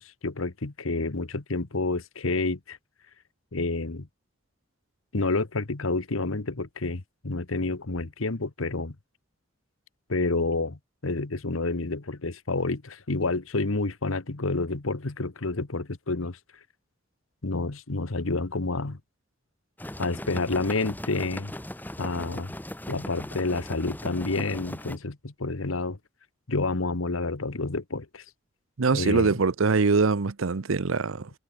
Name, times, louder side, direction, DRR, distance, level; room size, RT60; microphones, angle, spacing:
voice 1, 0.0-2.8 3.5-4.1 5.1-8.9 10.1-16.4 17.4-19.0 20.0-21.5 22.0-22.5 22.9-26.0 26.5-28.2 28.9-29.3, left 3 dB, 85° left, 1.3 m, -29 dB
sound 1, 19.8-25.0, left 1 dB, 10° left, 1.8 m, -38 dB
voice 2, 28.8-31.3, right 4 dB, 85° right, 0.7 m, -23 dB
head